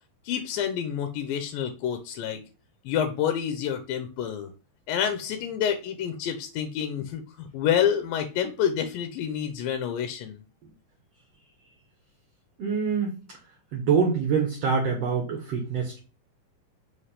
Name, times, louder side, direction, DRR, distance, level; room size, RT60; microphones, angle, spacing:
voice 1, 0.3-2.4 2.9-4.5 4.9-10.4, left 9 dB, 90° left, 7 dB, 2.4 m, -28 dB
voice 2, 12.6-13.2 13.7-16.0, right 6 dB, 60° right, 1 dB, 1.8 m, -25 dB
5.3 x 3.3 x 5.6 m, 0.34 s
omnidirectional pair, 3.9 m